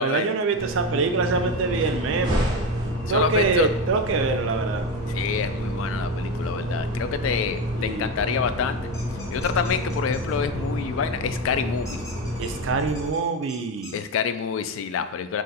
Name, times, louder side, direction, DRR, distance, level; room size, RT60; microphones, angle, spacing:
voice 1, 0.0-2.4 3.1-4.9 7.7-8.1 12.4-14.0, right 4 dB, 65° right, 7 dB, 0.4 m, -25 dB
sound 1, 0.5-12.7, equal, 20° right, 0.7 m, -30 dB
sound 2, 1.2-13.1, equal, 50° left, 0.9 m, -34 dB
voice 2, 3.1-3.7 5.1-8.8 9.3-12.0 13.9-15.4, left 7 dB, 75° left, 10 dB, 0.3 m, -27 dB
sound 3, 8.9-10.3 11.8-14.0, left 1 dB, 15° left, 0.6 m, -44 dB
3.8 x 2.5 x 4.0 m, 0.85 s
head